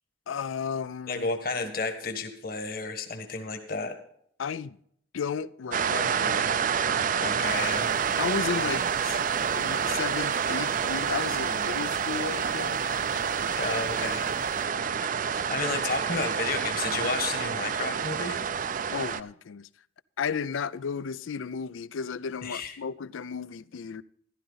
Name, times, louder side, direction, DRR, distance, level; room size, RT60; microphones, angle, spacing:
voice 1, 0.3-1.3 4.4-4.8 5.1-6.5 8.2-9.3 9.6-12.8 15.7-15.8 18.9-19.7 20.2-24.0, left 6 dB, 80° left, 0.4 m, -34 dB
voice 2, 1.1-3.9 7.2-7.9 13.6-14.2 15.2-18.4 22.4-22.7, left 4 dB, 50° left, 1.5 m, -32 dB
sound 1, 5.7-19.2, right 7 dB, 45° right, 0.4 m, -28 dB
sound 2, 7.4-14.7, left 1 dB, 15° left, 0.9 m, -47 dB
14.0 x 12.0 x 4.0 m
head